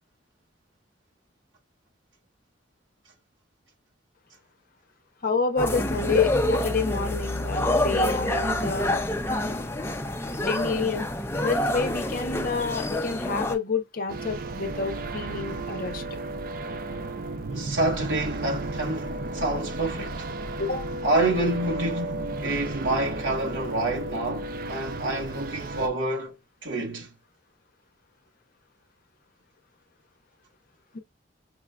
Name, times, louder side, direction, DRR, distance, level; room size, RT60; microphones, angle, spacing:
voice 1, 5.2-9.0 10.5-11.1 11.4-16.0 20.6-20.8 30.9-31.0, left 4 dB, 50° left, 0.7 m, -28 dB
sound 1, 5.6-13.6, left 1 dB, 15° left, 0.5 m, -27 dB
sound 2, 14.1-25.9, right 2 dB, 50° right, 0.4 m, -33 dB
voice 2, 17.5-20.3 21.0-26.3 26.6-27.1, right 2 dB, 80° right, 1.5 m, -28 dB
6.1 x 2.3 x 2.2 m
head